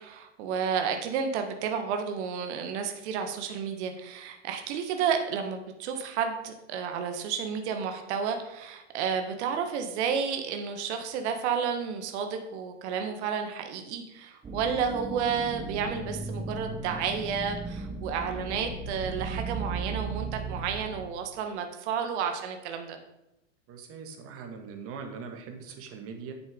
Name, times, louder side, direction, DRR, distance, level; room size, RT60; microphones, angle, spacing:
voice 1, 0.0-23.0, right 7 dB, 60° right, 6 dB, 1.7 m, -31 dB
sound 1, 14.4-21.1, right 3 dB, 15° right, 1.4 m, -36 dB
voice 2, 23.7-26.3, right 5 dB, 35° right, 5 dB, 1.9 m, -41 dB
9.5 x 7.2 x 5.3 m, 0.88 s
hypercardioid pair, 125°, 38 cm